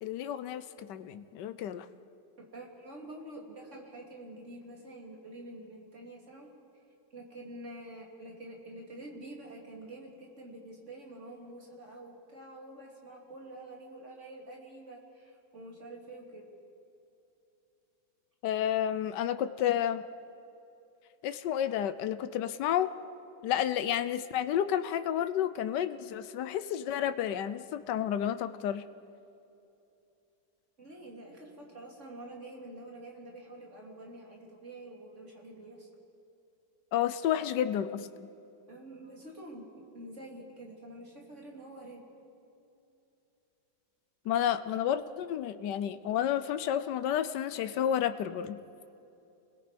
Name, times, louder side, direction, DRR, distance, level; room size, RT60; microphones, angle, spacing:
voice 1, 0.0-1.9 18.4-20.0 21.2-22.9 23.4-28.8 36.9-38.1 44.3-48.6, left 10 dB, 80° left, 11 dB, 1.4 m, -31 dB
voice 2, 2.4-6.5 7.1-16.5 30.8-35.9 38.7-39.6 39.9-42.0, right 1 dB, 40° right, -1 dB, 3.5 m, -47 dB
29.5 x 21.5 x 5.2 m, 2.7 s
omnidirectional pair, 1.8 m